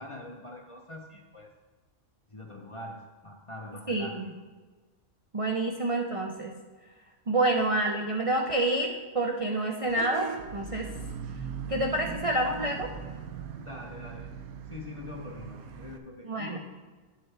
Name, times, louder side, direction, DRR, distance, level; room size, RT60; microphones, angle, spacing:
voice 1, 0.0-1.5 2.3-4.2 13.6-14.3 14.7-16.6, left 2 dB, 30° left, 0 dB, 0.6 m, -43 dB
voice 2, 3.9-4.3 5.3-6.5 7.3-10.9 11.7-12.9 16.2-16.6, right 2 dB, 45° right, 1 dB, 0.4 m, -28 dB
Vehicle horn car horn honking / Bus, 9.9-16.0, right 6 dB, 90° right, 1.1 m, -39 dB
10.5 x 7.5 x 3.3 m, 1.3 s
omnidirectional pair, 1.4 m